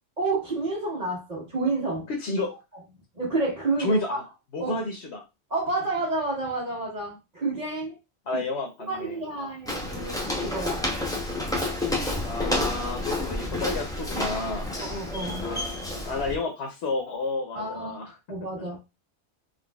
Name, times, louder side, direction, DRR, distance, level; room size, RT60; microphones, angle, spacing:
voice 1, 0.2-2.1 3.1-4.2 4.6-4.8 5.5-7.9 8.3-8.4 8.9-10.8 14.8-15.4 17.5-18.0 18.3-18.8, right 3 dB, 40° right, 1.3 m, -29 dB
voice 2, 2.1-2.5 3.8-4.2 4.5-5.2 8.3-9.5 12.2-14.7 15.4-18.1, left 2 dB, 75° left, 1.0 m, -31 dB
Walk footsteps, 9.7-16.4, left 1 dB, 5° left, 0.5 m, -30 dB
3.8 x 3.1 x 2.2 m
omnidirectional pair, 1.1 m